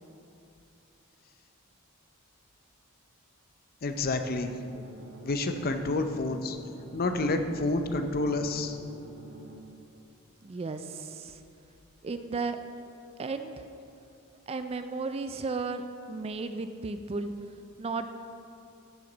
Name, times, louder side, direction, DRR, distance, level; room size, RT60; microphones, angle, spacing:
voice 1, 3.8-4.5 5.2-6.6 6.9-8.8, left 2 dB, 45° left, 7 dB, 0.6 m, -29 dB
sound 1, 4.0-9.5, right 2 dB, 60° right, 1.5 m, -48 dB
voice 2, 10.4-11.4 12.0-12.6 13.2-13.5 14.5-15.8 16.1-17.3 17.8-18.1, right 4 dB, 30° right, 9 dB, 0.3 m, -34 dB
13.0 x 6.3 x 4.0 m, 2.6 s
head